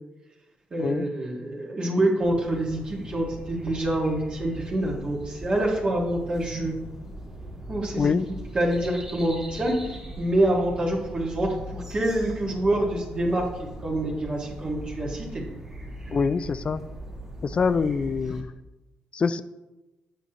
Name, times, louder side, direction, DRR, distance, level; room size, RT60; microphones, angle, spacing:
voice 1, 0.7-6.7 7.7-13.4 13.8-15.5, right 1 dB, 35° right, -3 dB, 1.6 m, -26 dB
sound 1, 2.2-18.4, right 1 dB, 15° right, 1.7 m, -40 dB
voice 2, 8.0-8.3 16.1-16.8 17.4-18.5 19.1-19.4, left 5 dB, 35° left, 15 dB, 0.4 m, -25 dB
8.4 x 7.3 x 2.9 m, 1.1 s
cardioid pair, 105°, 3 cm